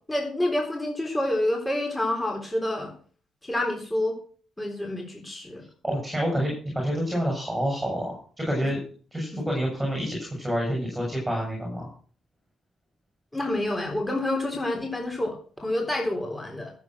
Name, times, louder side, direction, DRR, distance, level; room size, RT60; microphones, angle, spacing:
voice 1, 0.1-2.9 3.4-4.2 4.6-5.6 8.6-8.7 9.3-9.4 13.3-16.7, left 1 dB, 10° left, 1 dB, 3.7 m, -28 dB
voice 2, 5.8-8.8 9.1-11.9, equal, 10° right, 0 dB, 7.7 m, -28 dB
13.5 x 8.0 x 6.3 m, 0.42 s
cardioid pair, 90°, 0 cm